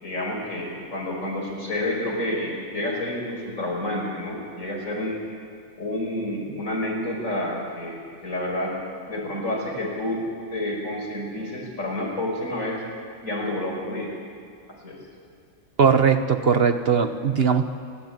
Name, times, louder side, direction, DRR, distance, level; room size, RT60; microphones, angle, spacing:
voice 1, 0.0-5.2 5.8-8.8 9.1-10.2 10.5-12.8 13.2-14.1 14.8-15.0, left 1 dB, 80° left, -2 dB, 5.8 m, -29 dB
voice 2, 15.8-17.6, right 6 dB, 50° right, 9 dB, 1.2 m, -19 dB
29.0 x 11.5 x 9.7 m, 2.2 s
omnidirectional pair, 1.3 m